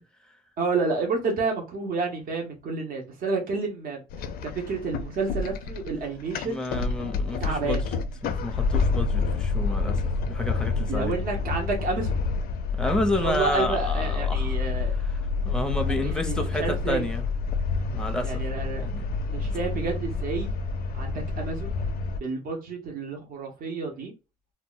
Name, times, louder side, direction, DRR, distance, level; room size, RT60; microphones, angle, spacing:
voice 1, 0.6-4.0 4.4-6.6 7.4-7.8 10.9-12.1 12.8-12.9 13.2-15.0 16.0-17.1 18.2-18.9 19.3-20.5 20.9-21.7 22.2-24.1, right 4 dB, 60° right, 0.8 m, -30 dB
sound 1, 4.1-22.2, left 4 dB, 65° left, 0.4 m, -28 dB
voice 2, 6.4-11.2 12.7-17.2 17.8-18.5 18.8-19.1 19.5-19.8, left 1 dB, 5° left, 0.5 m, -31 dB
2.1 x 2.0 x 3.7 m
cardioid pair, 110°, 17 cm